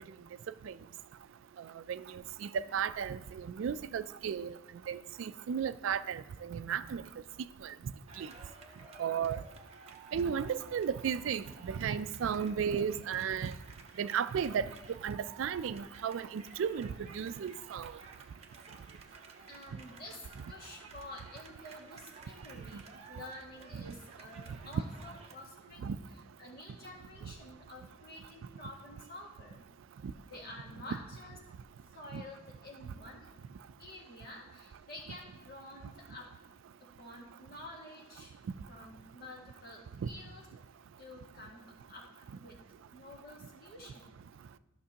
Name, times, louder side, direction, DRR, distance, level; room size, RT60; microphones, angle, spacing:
voice 1, 2.4-4.5 4.9-7.0 7.6-7.7 8.2-8.3 9.0-9.4 10.1-13.5 14.0-14.7 15.0-17.9 23.7-23.8 25.8-26.0 30.0-30.1 32.1-32.2 40.0-40.1, right 7 dB, 75° right, 0.3 m, -34 dB
sound 1, 8.1-25.4, right 4 dB, 30° right, 0.9 m, -55 dB
voice 2, 19.5-25.9 26.4-29.7 30.2-31.4 31.9-33.3 33.8-36.3 36.8-38.3 38.7-40.4 41.0-42.6 42.9-44.2, left 1 dB, 50° left, 1.8 m, -50 dB
13.5 x 6.0 x 2.9 m
head